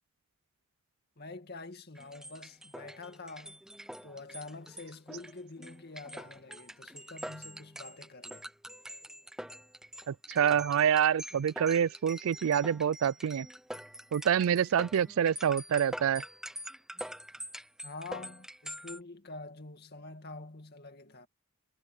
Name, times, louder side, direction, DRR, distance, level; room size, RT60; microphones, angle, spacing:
voice 1, 1.2-3.6 4.0-8.5 17.8-21.3, left 3 dB, 45° left, 2.2 m, -46 dB
sound 1, 1.9-19.0, equal, 5° right, 0.6 m, -45 dB
voice 2, 10.1-13.5 14.1-16.2, right 8 dB, 70° right, 0.3 m, -27 dB
head